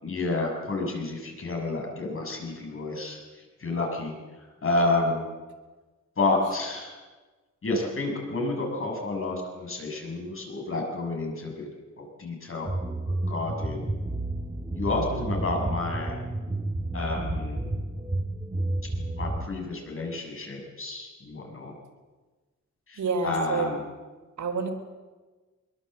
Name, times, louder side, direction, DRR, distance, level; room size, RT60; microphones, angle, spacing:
voice 1, 0.0-3.2 3.6-4.1 4.6-5.3 6.2-7.0 7.6-11.7 12.0-12.7 13.3-13.9 14.8-16.2 16.9-17.7 19.2-21.7 22.9-23.8, left 2 dB, 45° left, 1 dB, 6.6 m, -30 dB
sound 1, 12.6-19.4, right 2 dB, 15° right, 1.7 m, -31 dB
voice 2, 23.0-23.7 24.4-24.7, right 5 dB, 80° right, 4 dB, 3.8 m, -28 dB
23.0 x 22.5 x 7.9 m, 1.3 s
wide cardioid pair, 165°, 30 cm